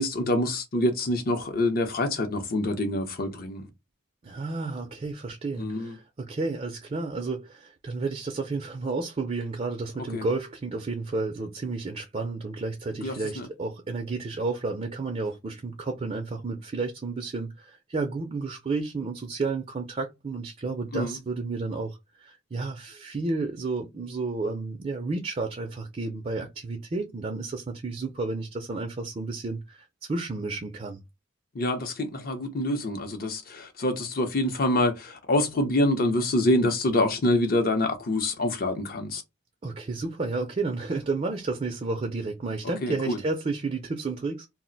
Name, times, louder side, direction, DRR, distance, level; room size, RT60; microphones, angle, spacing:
voice 1, 0.0-3.6 5.6-5.9 10.1-10.2 13.0-13.5 20.9-21.2 31.5-39.2 42.8-43.2, left 1 dB, 50° left, 0.6 m, -26 dB
voice 2, 4.2-31.0 39.6-44.5, right 3 dB, 35° right, 0.4 m, -31 dB
2.4 x 2.1 x 3.8 m
head